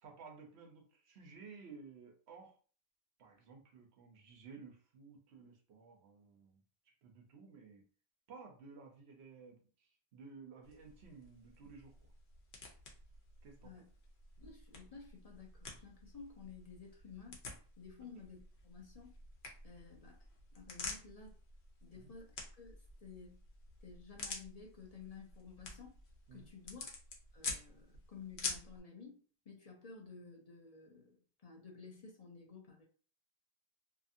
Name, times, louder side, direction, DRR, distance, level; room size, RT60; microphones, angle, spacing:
voice 1, 0.0-2.5 3.2-6.6 7.0-7.8 8.3-11.9 13.4-13.7 21.9-22.1 26.3-26.5, right 4 dB, 90° right, 3 dB, 1.0 m, -55 dB
sound 1, 10.6-28.8, left 4 dB, 80° left, 1.0 m, -49 dB
voice 2, 14.4-17.4 17.8-19.1 19.6-20.2 20.5-21.4 21.8-23.4 23.8-25.9 26.3-26.9 27.3-29.2 29.5-32.8, left 5 dB, 45° left, -1 dB, 0.6 m, -53 dB
2.7 x 2.5 x 2.6 m, 0.41 s
omnidirectional pair, 1.1 m